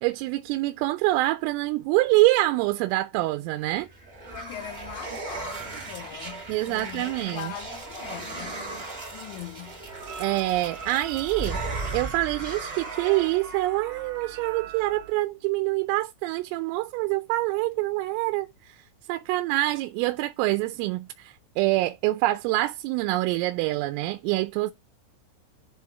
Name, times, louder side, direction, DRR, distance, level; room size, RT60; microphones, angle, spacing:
voice 1, 0.0-3.9 6.5-7.5 10.2-11.6 11.9-18.8 19.1-24.7, right 18 dB, 85° right, 3.3 m, -25 dB
sound 1, 3.6-13.6, right 3 dB, 30° right, 1.0 m, -37 dB
voice 2, 4.3-8.7 9.1-9.8, left 11 dB, 80° left, 3.2 m, -41 dB
sound 2, 9.9-15.1, right 6 dB, 55° right, 3.1 m, -42 dB
10.5 x 4.8 x 4.6 m
omnidirectional pair, 5.9 m